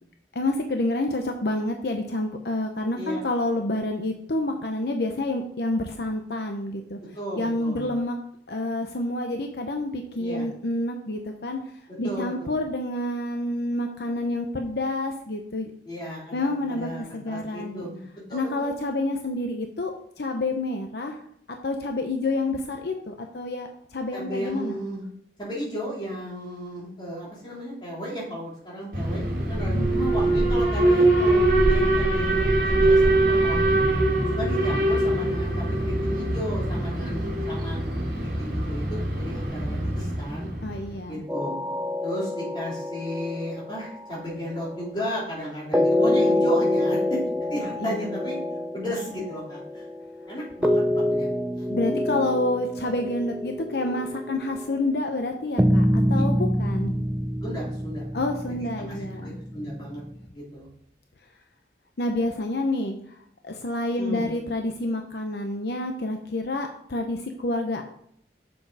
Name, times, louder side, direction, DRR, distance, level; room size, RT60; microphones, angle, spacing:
voice 1, 0.3-7.0 7.3-8.1 8.5-11.6 12.0-15.7 16.3-17.9 18.3-19.9 20.2-21.2 21.5-24.8 29.7-30.1 40.6-41.2 46.0-46.4 47.8-48.2 51.7-56.9 58.1-59.4 62.0-63.2 63.4-67.8, left 2 dB, 70° left, 4 dB, 0.7 m, -28 dB
voice 2, 7.1-7.9 10.2-10.4 11.9-12.6 15.8-18.0 18.3-18.7 24.1-25.1 25.4-33.8 34.3-37.8 38.2-40.5 41.1-41.6 42.0-47.2 47.5-48.4 48.7-49.8 50.3-50.8 51.1-51.3 51.6-52.0 57.4-58.1 58.5-60.0 60.3-60.7 64.0-64.3, equal, 25° left, -5 dB, 3.4 m, -34 dB
Alarm, 28.9-40.9, right 2 dB, 50° right, 2.0 m, -23 dB
sound 1, 41.3-44.9 45.7-54.7 55.6-60.2, left 1 dB, 10° right, 0.5 m, -26 dB
7.1 x 6.6 x 4.8 m, 0.69 s
head